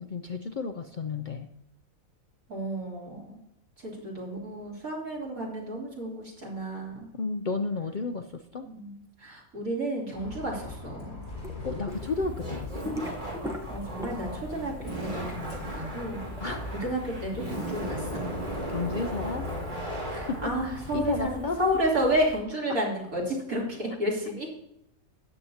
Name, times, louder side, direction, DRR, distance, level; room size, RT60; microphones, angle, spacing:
voice 1, 0.0-1.5 7.1-8.7 11.6-12.9 16.4-16.6 18.7-19.5 20.3-20.5 20.9-21.6, left 4 dB, 55° left, 6 dB, 0.5 m, -32 dB
voice 2, 2.5-3.4 3.8-7.1 8.6-11.2 13.7-14.7 15.0-16.3 16.8-18.3 20.1-24.5, right 1 dB, 90° right, -4 dB, 3.7 m, -31 dB
Bus, 10.1-21.3, left 3 dB, 40° left, 3.8 m, -42 dB
sound 1, 11.4-12.1 12.4-14.4 14.7-16.9, left 1 dB, ahead, 1.0 m, -38 dB
Laughter, 11.9-22.4, right 1 dB, 35° right, 2.9 m, -37 dB
13.5 x 9.1 x 2.8 m, 0.79 s
omnidirectional pair, 1.5 m